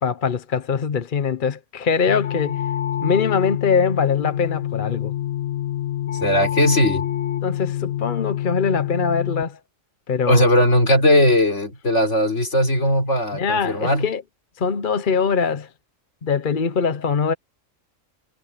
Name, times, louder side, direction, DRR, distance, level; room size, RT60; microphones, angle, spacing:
voice 1, 0.0-2.6 3.0-5.1 7.4-9.6 10.1-10.6 13.3-14.2 14.6-15.7 16.2-17.3, left 5 dB, 45° left, 0.9 m, -22 dB
sound 1, 2.1-9.4, left 12 dB, 85° left, 1.4 m, -26 dB
voice 2, 6.1-7.1 10.3-14.1, left 1 dB, 60° left, 4.6 m, -18 dB
omnidirectional pair, 1.4 m